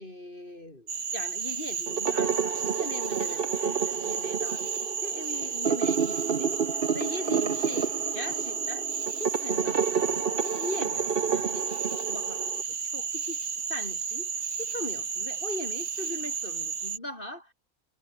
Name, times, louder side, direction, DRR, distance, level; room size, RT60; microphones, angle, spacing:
voice 1, 0.0-4.7 5.0-12.5 12.8-17.5, left 1 dB, 35° left, 5.4 m, -40 dB
Cricket / Frog, 0.9-17.0, right 6 dB, 90° right, 2.3 m, -33 dB
sound 1, 1.9-12.6, right 6 dB, 45° right, 1.2 m, -30 dB
omnidirectional pair, 1.5 m